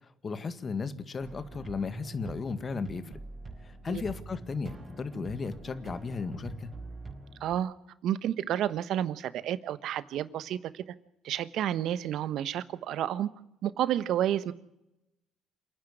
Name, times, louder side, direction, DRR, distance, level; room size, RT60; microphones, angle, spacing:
voice 1, 0.2-3.1 3.6-6.7, left 5 dB, 40° left, 11 dB, 1.9 m, -35 dB
sound 1, 1.2-7.6, right 3 dB, 35° right, 4.9 m, -44 dB
voice 2, 7.4-7.7 8.0-10.8 11.2-13.3 13.6-14.5, right 11 dB, 65° right, 15 dB, 1.1 m, -30 dB
28.0 x 10.0 x 9.9 m, 0.88 s
supercardioid pair, 70°, 0 cm